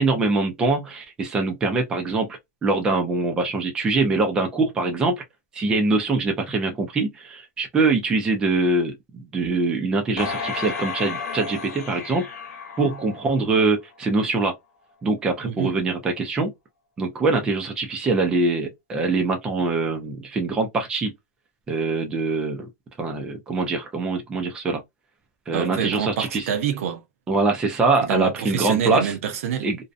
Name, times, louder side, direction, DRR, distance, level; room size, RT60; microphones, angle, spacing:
voice 1, 0.0-5.2 5.5-12.2 12.8-14.5 15.0-16.5 17.0-21.1 21.7-22.7 23.0-24.8 25.5-26.4 27.3-29.1 29.6-29.8, right 3 dB, 10° right, 0.4 m, -23 dB
sound 1, 10.2-13.6 14.1-14.2, left 5 dB, 80° left, 0.9 m, -32 dB
voice 2, 15.4-15.7 25.5-27.0 28.0-29.7, right 8 dB, 60° right, 0.6 m, -27 dB
2.6 x 2.1 x 2.4 m
supercardioid pair, 175°, 9 cm